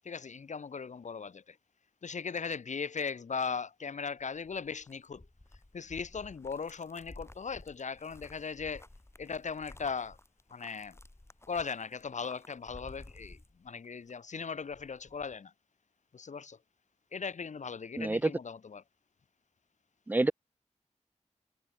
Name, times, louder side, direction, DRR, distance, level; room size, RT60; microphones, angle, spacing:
voice 1, 0.0-1.6 2.0-5.2 5.7-8.9 9.2-10.2 10.5-10.9 11.5-15.5 16.1-16.6 17.1-18.8, left 5 dB, 75° left, 1.5 m, -38 dB
sound 1, 4.2-14.1 14.4-15.3, left 1 dB, 20° left, 2.8 m, -54 dB
voice 2, 18.0-18.3 20.1-20.3, right 2 dB, 15° right, 0.4 m, -27 dB
wide cardioid pair, 75°, 12 cm